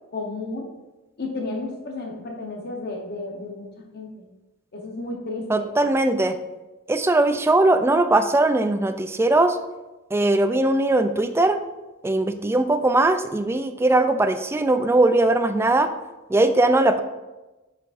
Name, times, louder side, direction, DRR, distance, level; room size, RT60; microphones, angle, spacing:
voice 1, 0.1-0.7 1.2-3.7 3.9-4.2 4.7-5.7, left 2 dB, 50° left, 1 dB, 1.0 m, -32 dB
voice 2, 5.5-6.4 6.9-9.6 10.1-11.6 12.0-15.9 16.3-17.0, right 2 dB, 10° right, 8 dB, 0.3 m, -20 dB
7.4 x 5.9 x 2.5 m, 1.1 s
head